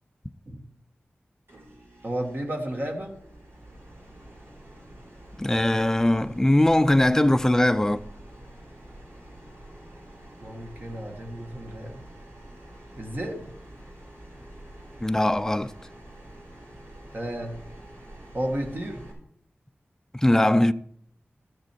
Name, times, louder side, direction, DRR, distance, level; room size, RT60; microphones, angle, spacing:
sound 1, 1.5-19.1, right 1 dB, 75° right, 4.4 m, -47 dB
voice 1, 2.0-3.1 10.4-12.0 13.0-13.5 17.1-17.6 18.3-19.0, right 1 dB, 50° right, 1.8 m, -32 dB
voice 2, 5.4-8.0 15.0-15.7 20.1-20.7, left 1 dB, 10° left, 0.5 m, -21 dB
13.5 x 6.6 x 4.5 m
wide cardioid pair, 70°, 4 cm